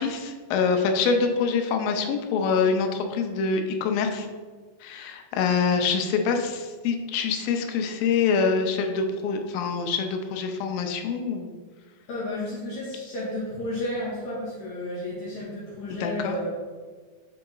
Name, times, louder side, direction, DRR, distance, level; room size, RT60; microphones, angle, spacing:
voice 1, 0.0-4.3 4.8-11.5 16.0-16.3, left 5 dB, 90° left, 5 dB, 2.4 m, -25 dB
voice 2, 12.1-16.5, left 1 dB, 60° left, -6 dB, 2.3 m, -32 dB
7.5 x 3.9 x 3.8 m, 1.4 s
omnidirectional pair, 3.9 m